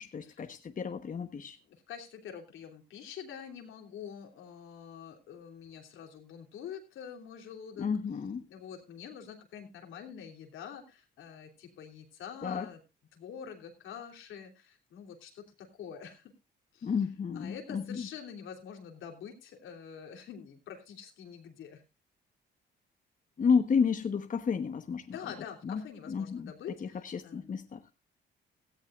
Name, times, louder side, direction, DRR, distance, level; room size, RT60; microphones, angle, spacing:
voice 1, 0.0-1.6 7.8-8.4 12.4-12.7 16.8-18.1 23.4-25.1 25.6-26.5 26.8-27.8, left 6 dB, 40° left, 7 dB, 1.2 m, -31 dB
voice 2, 1.7-7.9 8.5-12.8 13.1-16.3 16.7-16.9 17.3-21.8 25.1-27.5, left 8 dB, 80° left, 3 dB, 3.3 m, -46 dB
17.0 x 14.0 x 2.5 m, 0.28 s
cardioid pair, 90°, 20 cm